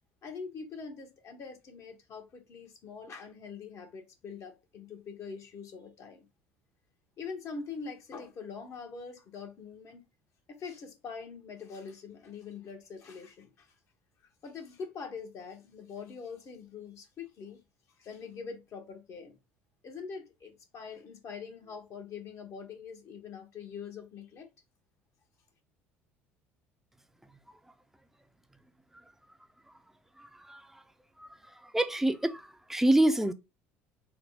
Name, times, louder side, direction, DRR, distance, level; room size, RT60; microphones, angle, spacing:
voice 1, 0.2-6.3 7.2-10.0 10.5-13.7 14.4-17.6 18.0-19.4 19.8-24.5, left 5 dB, 50° left, 1.1 m, -43 dB
voice 2, 31.7-32.4 32.7-33.3, right 1 dB, 5° right, 0.5 m, -25 dB
4.0 x 2.2 x 3.4 m
hypercardioid pair, 65°, 6 cm